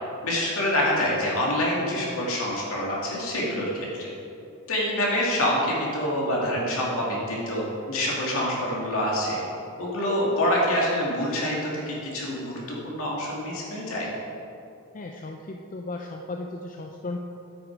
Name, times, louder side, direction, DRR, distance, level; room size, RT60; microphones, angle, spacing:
voice 1, 0.2-3.7 4.0-4.1 4.7-9.4 9.8-14.1, left 1 dB, 65° left, -4 dB, 2.5 m, -26 dB
voice 2, 14.9-17.2, left 2 dB, 35° left, 2 dB, 0.5 m, -35 dB
9.1 x 8.8 x 4.7 m, 2.7 s
head